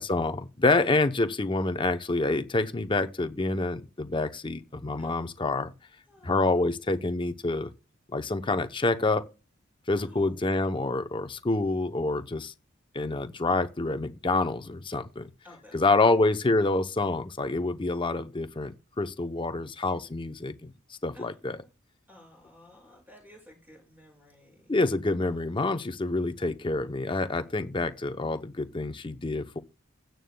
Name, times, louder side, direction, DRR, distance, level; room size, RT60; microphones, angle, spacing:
voice 1, 0.0-5.7 6.2-7.7 8.1-9.3 9.9-12.5 12.9-15.3 15.7-20.7 21.0-21.6 24.7-29.6, left 2 dB, 25° left, 0.7 m, -27 dB
voice 2, 6.1-6.7 10.0-10.4 15.4-16.2 21.1-21.7 22.1-24.7, left 1 dB, 10° right, 6.3 m, -54 dB
16.0 x 9.2 x 2.2 m
head